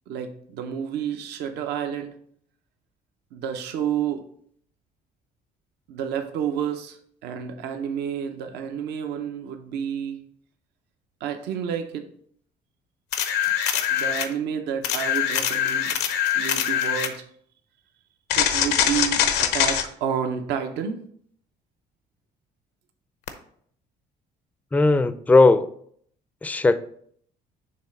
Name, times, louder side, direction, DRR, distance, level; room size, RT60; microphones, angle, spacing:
voice 1, 0.1-2.2 3.3-4.3 5.9-7.0 7.2-10.2 11.2-12.1 13.7-16.0 16.3-17.2 18.4-21.0, right 8 dB, 85° right, 0.7 m, -30 dB
sound 1, 13.1-14.3 14.8-17.2 18.3-19.9 23.3-23.4, left 9 dB, 85° left, 0.7 m, -23 dB
voice 2, 24.7-25.7 26.4-26.8, left 3 dB, 10° left, 0.3 m, -17 dB
6.8 x 3.2 x 5.3 m
cardioid pair, 110°, 17 cm